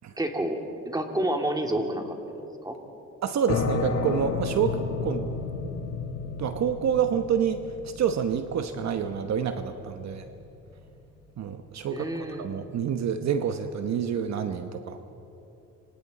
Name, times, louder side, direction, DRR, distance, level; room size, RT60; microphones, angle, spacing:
voice 1, 0.2-0.6 0.9-2.4 2.6-2.8 11.9-12.5, right 1 dB, 10° right, 3 dB, 2.5 m, -29 dB
voice 2, 3.2-5.3 6.4-10.3 11.4-15.0, right 7 dB, 65° right, 8 dB, 1.1 m, -28 dB
sound 1, 3.5-10.9, left 5 dB, 60° left, 2.5 m, -33 dB
27.0 x 25.5 x 4.2 m, 2.9 s
cardioid pair, 90°, 30 cm